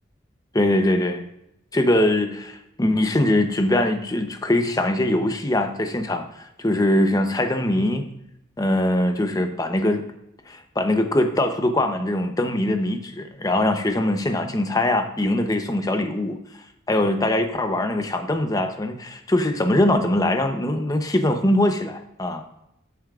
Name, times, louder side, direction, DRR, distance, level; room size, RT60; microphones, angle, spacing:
voice 1, 0.5-1.2 1.7-8.1 8.6-10.0 10.5-16.4 16.9-22.4, left 1 dB, 20° left, 6 dB, 0.8 m, -22 dB
13.0 x 7.1 x 2.5 m, 0.81 s
head